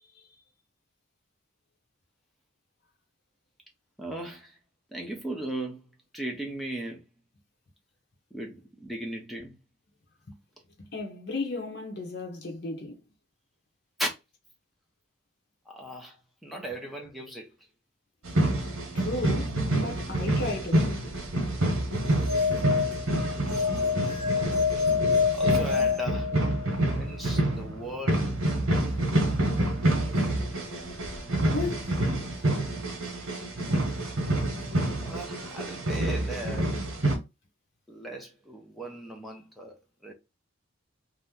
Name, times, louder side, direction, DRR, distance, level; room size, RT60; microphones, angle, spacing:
voice 1, 4.0-4.6 4.9-5.8 6.1-7.0 8.3-9.6 14.0-14.1 15.7-17.5 25.3-26.4 26.9-28.4 35.0-36.7 37.9-40.1, right 1 dB, ahead, 0.6 m, -37 dB
voice 2, 10.8-13.0 18.9-20.9 31.5-31.9, left 2 dB, 50° left, 0.7 m, -34 dB
sound 1, 18.2-37.2, right 1 dB, 80° right, 1.0 m, -28 dB
sound 2, 22.0-26.8, left 6 dB, 20° right, 1.0 m, -27 dB
2.8 x 2.0 x 3.5 m
head